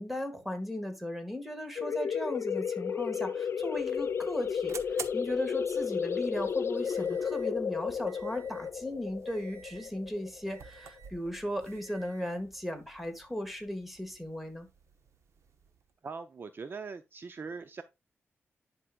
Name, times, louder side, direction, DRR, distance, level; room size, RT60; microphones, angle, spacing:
voice 1, 0.0-14.7, left 1 dB, ahead, 1.8 m, -37 dB
sound 1, 1.8-11.1, left 6 dB, 60° left, 0.5 m, -33 dB
sound 2, 3.5-15.9, right 6 dB, 75° right, 0.9 m, -51 dB
voice 2, 16.0-17.8, right 4 dB, 45° right, 0.5 m, -41 dB
10.5 x 4.8 x 2.4 m
wide cardioid pair, 110°, 5 cm